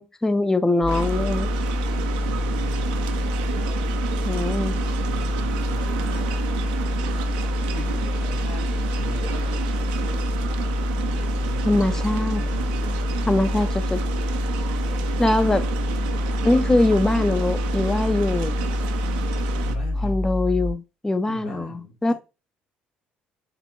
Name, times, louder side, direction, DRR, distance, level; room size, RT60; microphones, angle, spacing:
voice 1, 0.0-1.5 4.2-4.8 11.7-12.4 13.3-14.0 15.2-15.7 16.4-18.5 20.0-22.1, left 2 dB, 10° left, 0.4 m, -22 dB
sound 1, 0.8-20.7, left 1 dB, 60° left, 1.7 m, -26 dB
sound 2, 0.9-19.8, right 9 dB, 75° right, 0.5 m, -31 dB
voice 2, 5.0-6.4 7.7-9.6 11.0-12.0 12.4-13.1 19.6-20.2 21.3-22.1, equal, 90° left, 1.2 m, -40 dB
3.9 x 3.5 x 3.5 m
hypercardioid pair, 55°, 4 cm